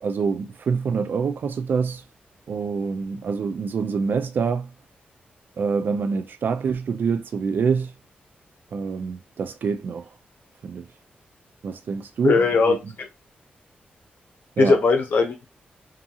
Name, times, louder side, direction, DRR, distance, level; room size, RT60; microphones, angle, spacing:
voice 1, 0.0-2.0 2.5-4.7 5.6-7.9 8.7-10.1 10.6-10.9 11.6-12.9 14.6-14.8, right 5 dB, 65° right, 0.3 m, -26 dB
voice 2, 12.2-12.8 14.6-15.5, left 4 dB, 65° left, 0.5 m, -19 dB
2.7 x 2.7 x 2.3 m
cardioid pair, 75°, 4 cm